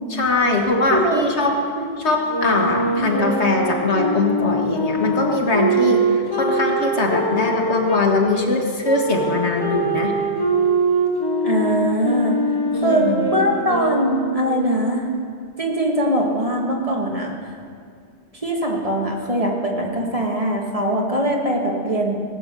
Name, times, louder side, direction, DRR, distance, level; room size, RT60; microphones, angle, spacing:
voice 1, 0.1-1.5 2.0-6.0 6.3-10.1 12.7-13.3, left 3 dB, 75° left, 0 dB, 1.9 m, -21 dB
voice 2, 0.9-1.2 1.8-1.9 2.9-3.1 11.4-12.4 12.8-15.1 15.6-17.4 18.4-22.2, right 1 dB, 30° right, -1 dB, 1.8 m, -22 dB
sound 1, 2.3-8.1 8.8-14.4, right 2 dB, 20° left, 1.6 m, -23 dB
19.0 x 8.2 x 6.8 m, 2.2 s
omnidirectional pair, 1.1 m